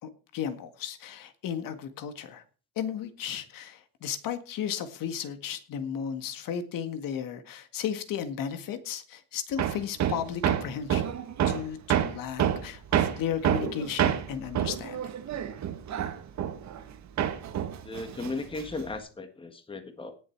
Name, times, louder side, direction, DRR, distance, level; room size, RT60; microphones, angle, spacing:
voice 1, 0.0-2.4 2.8-11.1 11.5-15.1, left 8 dB, 55° left, 10 dB, 1.8 m, -34 dB
Hammer, 9.6-16.9 17.2-18.9, right 10 dB, 45° right, 1.7 m, -28 dB
voice 2, 17.8-20.2, left 3 dB, 15° left, 8 dB, 1.6 m, -36 dB
18.0 x 7.3 x 4.6 m, 0.36 s
cardioid pair, 135°, 39 cm